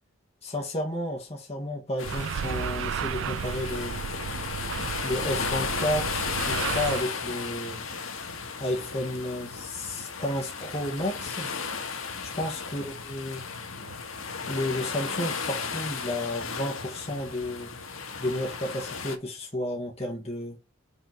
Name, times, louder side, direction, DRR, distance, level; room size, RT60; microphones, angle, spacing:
voice 1, 0.4-4.0 5.0-7.9 8.6-11.5 12.2-13.4 14.5-17.7 18.2-20.6, left 1 dB, 30° left, 1.7 m, -32 dB
sound 1, 2.0-19.2, left 5 dB, 70° left, 1.5 m, -34 dB
sound 2, 2.0-7.0, right 8 dB, 60° right, 0.3 m, -33 dB
5.5 x 4.3 x 6.0 m
head